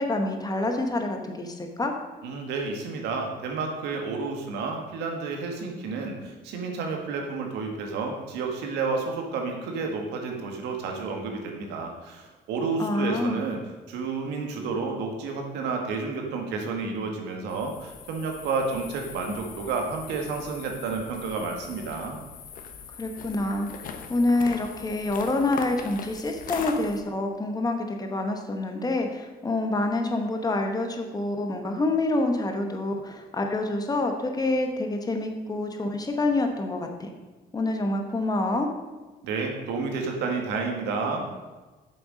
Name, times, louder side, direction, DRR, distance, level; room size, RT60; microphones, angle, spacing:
voice 1, 0.0-1.9 12.8-13.4 23.0-37.1 37.5-38.7, left 2 dB, 20° left, 4 dB, 1.2 m, -27 dB
voice 2, 2.2-13.6 13.9-22.2 39.2-41.3, right 4 dB, 85° right, 2 dB, 1.7 m, -30 dB
sound 1, 17.5-27.0, left 6 dB, 55° left, 1.1 m, -41 dB
8.0 x 6.9 x 5.2 m, 1.2 s
cardioid pair, 110°, 17 cm